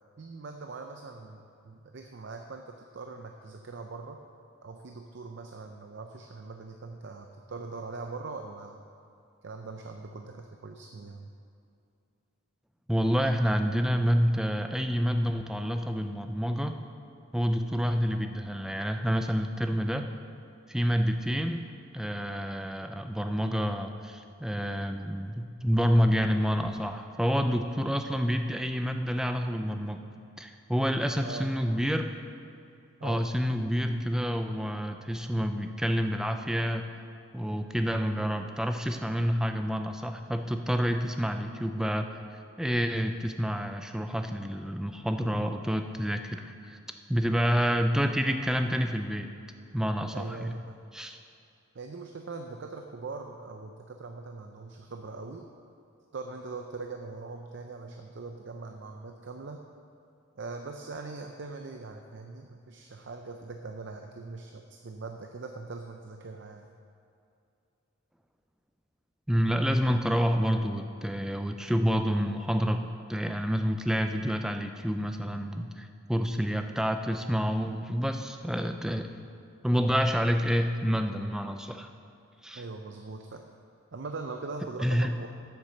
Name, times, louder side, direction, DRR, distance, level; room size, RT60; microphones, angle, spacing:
voice 1, 0.2-4.2 4.6-8.8 9.4-11.3 31.2-31.5 33.0-33.3 50.1-50.8 51.7-55.4 56.1-59.6 60.4-66.7 82.6-83.5 83.9-85.3, right 3 dB, 60° right, 4 dB, 0.5 m, -41 dB
voice 2, 12.9-16.8 17.3-20.1 20.7-21.7 21.9-30.0 30.4-32.1 33.0-36.8 37.3-42.1 42.6-46.8 47.1-49.3 49.7-50.5 50.9-51.2 69.3-72.8 73.1-79.1 79.6-81.9 82.4-82.6 84.8-85.1, equal, 5° right, 6 dB, 0.4 m, -28 dB
8.1 x 6.9 x 6.5 m, 2.5 s
head